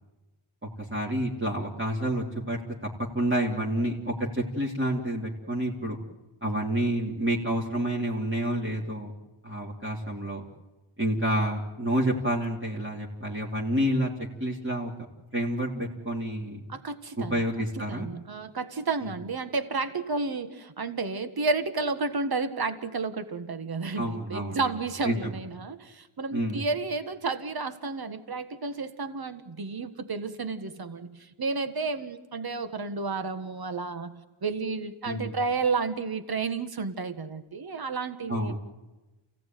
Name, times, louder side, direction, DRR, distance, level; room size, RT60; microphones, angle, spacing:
voice 1, 0.8-2.6 3.0-6.0 6.4-9.1 9.4-10.4 11.0-14.1 14.4-14.9 15.3-16.6 17.2-18.1 19.0-19.1 24.0-24.7 25.0-25.3 26.3-26.6 35.0-35.4 38.3-38.6, right 1 dB, 25° right, -3 dB, 3.2 m, -29 dB
voice 2, 16.7-17.4 17.8-38.5, right 4 dB, 45° right, 9 dB, 1.7 m, -31 dB
28.5 x 17.0 x 9.3 m, 1.1 s
wide cardioid pair, 100°, 50 cm